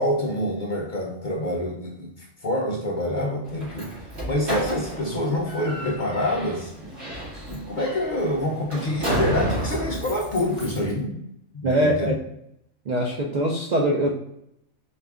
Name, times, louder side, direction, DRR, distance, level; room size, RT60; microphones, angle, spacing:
voice 1, 0.0-2.1 2.4-3.9 4.2-6.7 7.5-11.2 11.5-12.1, left 1 dB, 50° left, -1 dB, 0.6 m, -26 dB
Slam, 3.4-10.9, right 1 dB, 50° right, 2.0 m, -32 dB
voice 2, 11.6-12.2 12.9-14.1, right 1 dB, 80° right, -1 dB, 0.4 m, -22 dB
4.5 x 2.4 x 3.4 m, 0.77 s
omnidirectional pair, 1.5 m